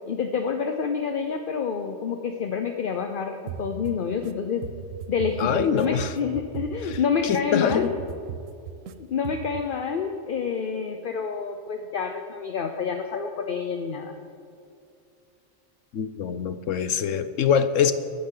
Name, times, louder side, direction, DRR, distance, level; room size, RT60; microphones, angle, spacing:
voice 1, 0.1-4.6 5.1-7.9 9.1-14.2, left 6 dB, 50° left, 5 dB, 0.8 m, -28 dB
sound 1, 3.5-4.3 4.6-7.4 7.7-8.9 9.2-9.6, right 8 dB, 75° right, 1.1 m, -37 dB
voice 2, 5.4-6.1 6.8-7.9 15.9-17.9, left 7 dB, 70° left, 12 dB, 1.1 m, -24 dB
22.5 x 12.0 x 3.9 m, 2.5 s
omnidirectional pair, 1.4 m